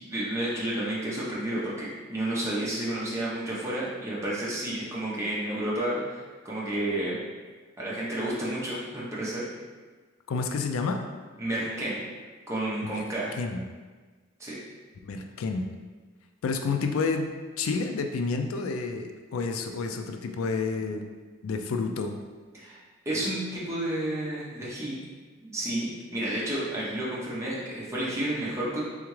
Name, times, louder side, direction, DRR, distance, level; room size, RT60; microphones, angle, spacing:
voice 1, 0.1-7.2 7.8-9.5 11.4-12.0 12.5-13.3 14.4-14.6 22.5-22.8 23.1-25.0 25.4-28.8, right 1 dB, 15° right, -7 dB, 0.8 m, -31 dB
voice 2, 10.3-11.0 12.8-13.0 13.4-13.6 15.0-15.7 16.4-21.0 21.4-22.2, left 4 dB, 85° left, 5 dB, 0.4 m, -30 dB
3.5 x 3.4 x 3.2 m, 1.4 s
head